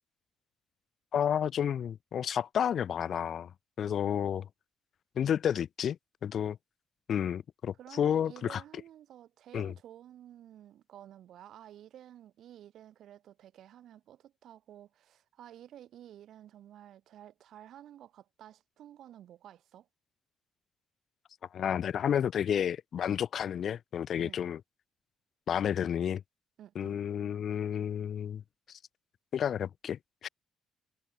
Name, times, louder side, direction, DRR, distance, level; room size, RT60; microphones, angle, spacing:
voice 1, 1.1-3.5 3.8-4.5 5.2-6.0 6.2-6.6 7.1-8.6 9.5-9.7 21.5-24.6 25.5-26.2 26.8-28.4 29.3-30.3, left 9 dB, 60° left, 0.4 m, -31 dB
voice 2, 7.8-19.9 24.2-24.4 26.6-27.0, right 11 dB, 75° right, 3.9 m, -52 dB
cardioid pair, 90°, 0 cm